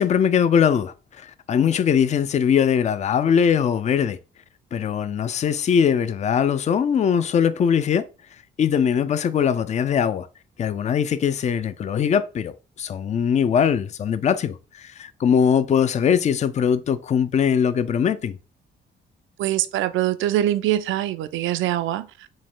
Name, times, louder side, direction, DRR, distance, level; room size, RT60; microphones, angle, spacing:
voice 1, 0.0-4.2 4.7-8.0 8.6-10.3 10.6-18.4, left 7 dB, 35° left, 0.4 m, -21 dB
voice 2, 19.4-22.3, right 13 dB, 80° right, 0.4 m, -23 dB
5.1 x 2.1 x 3.6 m
cardioid pair, 90°, 20 cm